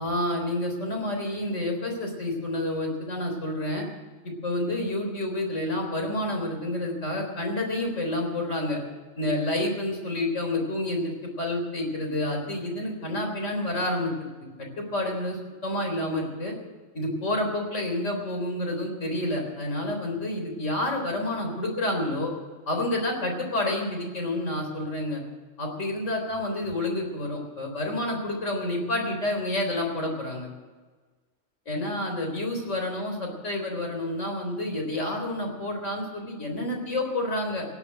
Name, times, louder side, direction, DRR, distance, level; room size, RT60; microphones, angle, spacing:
voice 1, 0.0-3.8 4.2-8.8 9.2-14.3 14.8-16.5 16.9-22.3 22.7-25.2 25.6-30.5 31.7-37.7, left 1 dB, 65° left, 2 dB, 4.1 m, -29 dB
17.0 x 11.0 x 7.6 m, 1.4 s
omnidirectional pair, 1.4 m